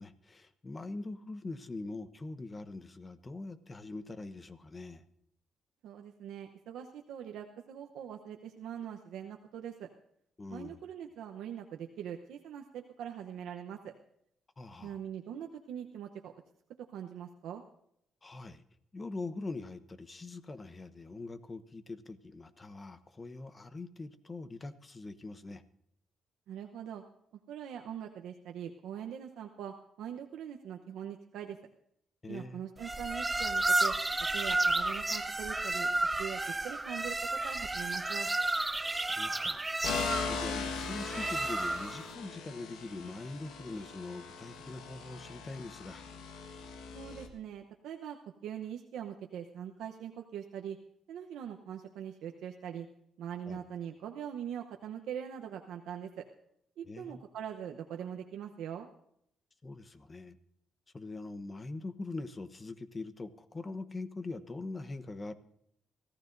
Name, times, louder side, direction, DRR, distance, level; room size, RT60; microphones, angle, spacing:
voice 1, 0.0-5.0 10.4-10.8 14.6-15.0 18.2-18.6 18.9-25.6 32.2-32.6 38.9-39.7 40.1-46.1 53.5-53.6 56.8-57.2 59.6-60.4 60.9-65.3, left 3 dB, 25° left, 12 dB, 1.0 m, -43 dB
voice 2, 5.8-9.9 10.5-13.9 14.8-16.3 16.9-17.6 26.5-27.0 27.5-31.6 32.3-33.9 34.3-35.9 36.2-36.4 36.6-38.3 46.9-50.8 51.1-52.9 53.2-56.2 56.8-58.9, right 9 dB, 85° right, 2 dB, 0.9 m, -42 dB
sound 1, 32.8-42.0, right 2 dB, 15° right, 0.7 m, -32 dB
sound 2, 39.8-47.3, left 5 dB, 85° left, 1.5 m, -40 dB
24.0 x 15.0 x 2.6 m, 0.73 s
cardioid pair, 90°, 0 cm